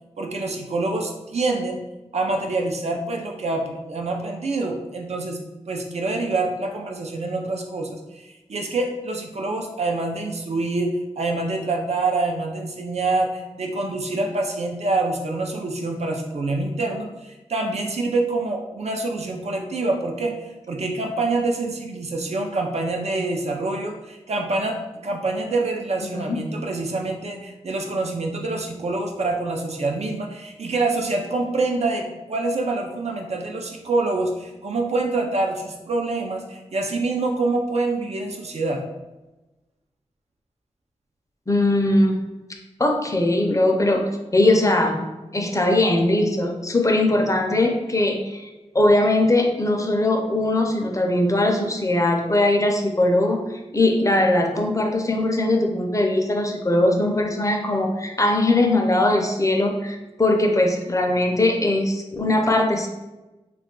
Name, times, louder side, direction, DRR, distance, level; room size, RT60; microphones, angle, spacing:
voice 1, 0.2-1.8 2.1-5.4 5.7-38.8, right 2 dB, 65° right, 2 dB, 0.5 m, -26 dB
voice 2, 26.1-26.4 41.5-42.2 42.8-44.0 44.3-45.1 45.3-48.5 48.7-62.9, left 1 dB, 25° left, 2 dB, 0.5 m, -20 dB
2.4 x 2.2 x 3.7 m, 1.1 s
cardioid pair, 50°, 12 cm